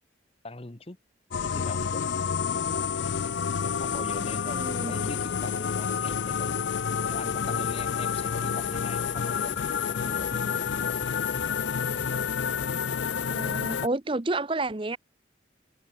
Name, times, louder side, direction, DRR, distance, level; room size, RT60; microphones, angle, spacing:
voice 1, 0.4-1.0 1.4-2.1 2.7-2.9 3.6-6.6 7.1-9.6 9.9-11.3, left 2 dB, 30° left, 0.9 m, -43 dB
sound 1, 1.3-13.9, left 6 dB, 75° left, 0.5 m, -29 dB
Bass guitar, 2.7-12.6, equal, 10° right, 3.6 m, -50 dB
voice 2, 4.5-5.1 13.3-15.0, right 2 dB, 25° right, 0.8 m, -30 dB
head